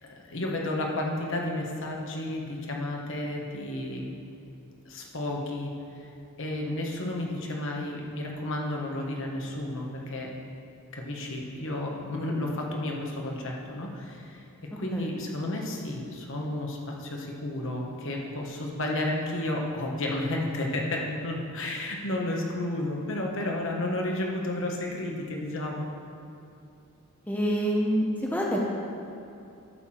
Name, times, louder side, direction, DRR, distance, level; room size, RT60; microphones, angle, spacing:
voice 1, 0.0-4.1 4.8-5.7 6.4-10.3 10.9-14.4 14.8-25.9, left 1 dB, 60° left, 0 dB, 1.4 m, -32 dB
voice 2, 27.3-28.6, equal, 10° left, -3 dB, 0.8 m, -26 dB
11.5 x 6.8 x 4.4 m, 2.7 s
head